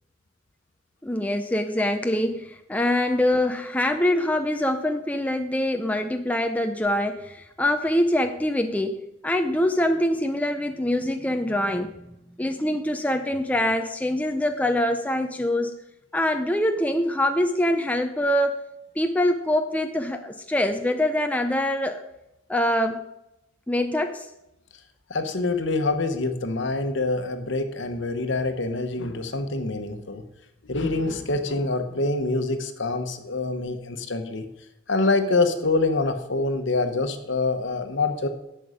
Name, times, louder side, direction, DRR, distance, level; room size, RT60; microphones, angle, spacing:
voice 1, 1.0-9.0 9.2-15.7 16.1-18.6 19.0-22.0 22.5-23.0 23.7-24.3, left 1 dB, 5° left, 6 dB, 0.5 m, -24 dB
voice 2, 25.1-30.2 30.6-34.4 34.9-38.3, left 3 dB, 60° left, 8 dB, 1.1 m, -25 dB
11.0 x 7.8 x 5.1 m, 0.89 s
head